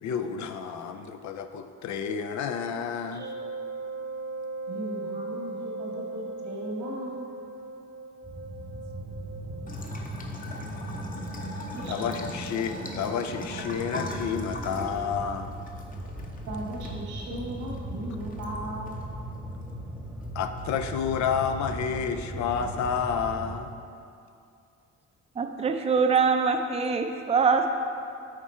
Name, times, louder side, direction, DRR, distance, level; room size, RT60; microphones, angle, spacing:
voice 1, 0.0-3.3 11.5-11.6 11.9-15.6 20.3-23.9, left 7 dB, 70° left, 7 dB, 0.5 m, -30 dB
Wind instrument woodwind instrument, 3.2-9.8, right 3 dB, 40° right, 0.9 m, -38 dB
voice 2, 4.7-7.3 11.7-12.1 16.5-19.0, right 1 dB, 80° right, -2 dB, 1.5 m, -37 dB
sound 1, 8.2-23.7, right 1 dB, ahead, 0.8 m, -38 dB
Bathtub (filling or washing) / Trickle dribble, 9.7-20.6, left 2 dB, 30° left, 0.8 m, -42 dB
voice 3, 25.4-27.7, right 5 dB, 20° right, 5 dB, 0.5 m, -23 dB
9.2 x 3.6 x 4.3 m, 2.5 s
cardioid pair, 90°, 30 cm